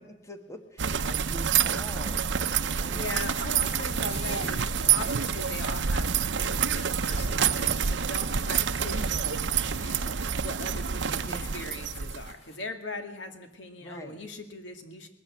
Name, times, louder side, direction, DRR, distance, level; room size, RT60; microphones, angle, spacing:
voice 1, 0.0-3.3 11.1-11.6 13.8-14.2, equal, 15° left, 6 dB, 1.5 m, -44 dB
sound 1, 0.8-12.3, right 7 dB, 85° right, 0.7 m, -28 dB
sound 2, 2.2-5.1 6.3-7.3, right 4 dB, 35° right, 2.6 m, -57 dB
voice 2, 2.5-15.1, left 2 dB, 90° left, 5 dB, 2.5 m, -40 dB
sound 3, 3.7-12.6, left 1 dB, 35° left, 4.3 m, -45 dB
20.5 x 14.0 x 9.0 m, 0.88 s
head